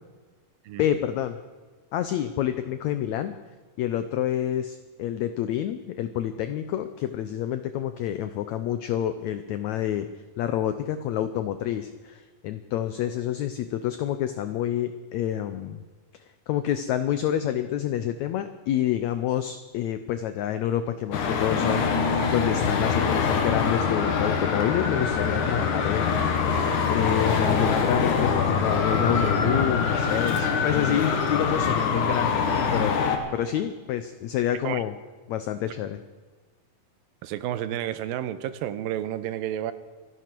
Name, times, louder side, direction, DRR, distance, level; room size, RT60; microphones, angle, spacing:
voice 1, 0.8-1.4 1.9-3.4 3.8-10.1 10.4-15.8 16.5-26.2 26.9-33.0 33.3-35.0 35.3-36.0, left 11 dB, 85° left, 10 dB, 1.6 m, -28 dB
Traffic noise roadway noise, 21.1-33.2, left 5 dB, 65° left, 2.8 m, -24 dB
voice 2, 37.2-39.7, right 11 dB, 90° right, 13 dB, 2.5 m, -31 dB
25.5 x 11.0 x 4.6 m, 1.4 s
omnidirectional pair, 4.1 m